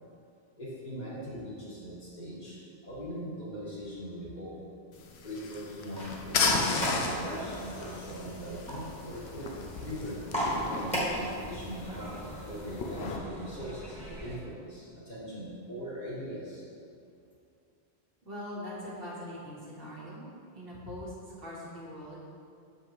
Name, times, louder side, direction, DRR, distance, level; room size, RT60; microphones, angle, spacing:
voice 1, 0.6-4.6 5.2-9.5 9.8-16.7, equal, 40° left, -8 dB, 1.8 m, -41 dB
sound 1, 4.9-13.2, left 4 dB, 75° left, 0.9 m, -35 dB
sound 2, 5.9-14.4, equal, 5° left, 1.4 m, -37 dB
voice 2, 18.2-20.3 20.5-21.1 21.4-22.2, left 1 dB, 60° right, -6 dB, 1.6 m, -41 dB
7.0 x 5.7 x 3.0 m, 2.4 s
omnidirectional pair, 1.1 m